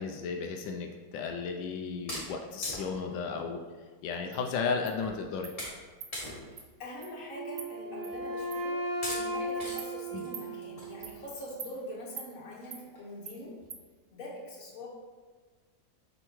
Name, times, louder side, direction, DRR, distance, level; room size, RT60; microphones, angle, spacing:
voice 1, 0.0-3.6 4.0-5.5 10.1-10.3, left 5 dB, 90° left, 3 dB, 1.3 m, -34 dB
sound 1, 2.1-3.2 4.0-4.1 4.5-4.6 5.0-5.2 5.6-5.8 6.1-6.6 7.1-7.2 8.1-8.3 9.0-9.2 9.6-9.8 10.1-11.7 12.2-12.3 12.6-12.7 13.0-13.1 13.4-13.7, left 1 dB, 20° left, 1.7 m, -41 dB
Insect, 4.3-4.4 4.9-5.0 5.4-5.6 6.0-6.1 6.6-6.7 7.0-7.1 7.6-7.7 8.0-8.1 8.5-8.6 9.1-9.2 9.8-9.9 10.3-10.5 11.0-11.2 11.6-11.7 12.2-12.3 12.7-12.8 13.3-13.4 13.7-13.8, right 7 dB, 70° right, 0.6 m, -43 dB
voice 2, 6.8-13.6 14.1-14.9, left 1 dB, 50° left, -3 dB, 1.7 m, -43 dB
Wind instrument woodwind instrument, 7.3-11.2, right 1 dB, 45° right, 1.5 m, -36 dB
7.8 x 5.5 x 3.0 m, 1.4 s
omnidirectional pair, 2.0 m